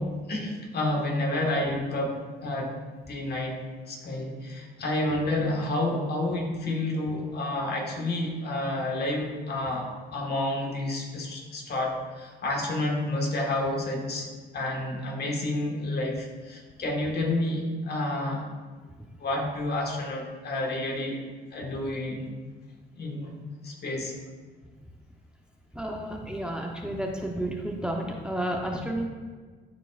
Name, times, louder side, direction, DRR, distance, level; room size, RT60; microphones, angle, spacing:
voice 1, 0.0-2.8 3.1-18.5 19.2-21.2 21.5-22.3 23.0-23.4 23.6-24.1, left 1 dB, 55° left, 0 dB, 1.6 m, -30 dB
voice 2, 25.7-29.1, right 1 dB, 5° right, 0 dB, 0.8 m, -31 dB
12.5 x 4.8 x 2.5 m, 1.4 s
cardioid pair, 90°, 20 cm